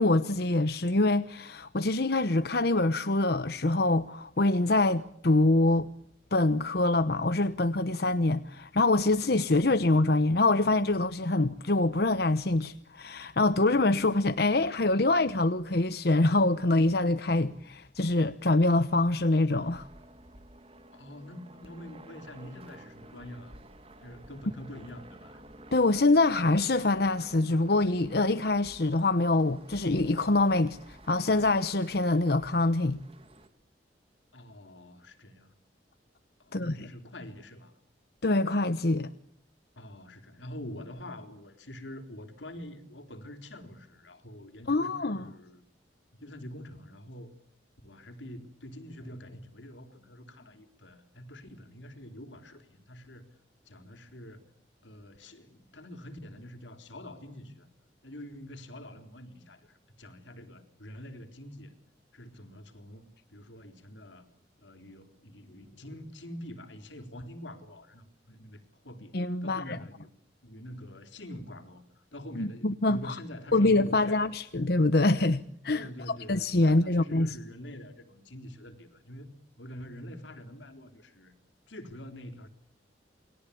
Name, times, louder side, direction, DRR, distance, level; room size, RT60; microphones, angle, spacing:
voice 1, 0.0-5.9 6.3-19.9 25.7-33.0 36.5-36.9 38.2-39.1 44.7-45.2 69.1-69.8 72.4-73.2 73.5-77.4, left 2 dB, 60° left, 1.0 m, -25 dB
sound 1, 19.5-33.5, right 1 dB, 30° right, 2.9 m, -52 dB
voice 2, 20.9-23.6 24.0-25.4 34.3-35.5 36.4-37.7 39.8-45.6 46.1-47.3 47.8-53.3 53.7-54.4 54.8-57.7 58.0-61.7 62.1-64.3 64.6-69.1 69.4-70.1 70.4-71.8 72.1-74.4 75.7-79.3 79.6-81.3 81.7-82.5, left 1 dB, 90° left, 4.1 m, -45 dB
29.0 x 22.0 x 8.6 m
head